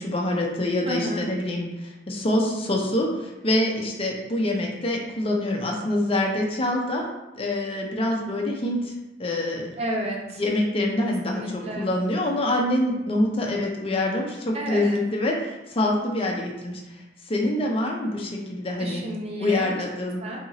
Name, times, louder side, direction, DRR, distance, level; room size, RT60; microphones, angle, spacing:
voice 1, 0.0-7.1 7.3-8.9 9.2-9.7 10.4-16.8 17.2-19.0 19.4-20.2, left 1 dB, 30° left, 0 dB, 0.5 m, -25 dB
voice 2, 0.9-1.3 9.8-10.4 11.3-11.9 14.5-15.0 18.8-19.8 20.2-20.5, right 1 dB, 35° right, -2 dB, 0.7 m, -31 dB
4.3 x 2.8 x 2.7 m, 1.0 s
head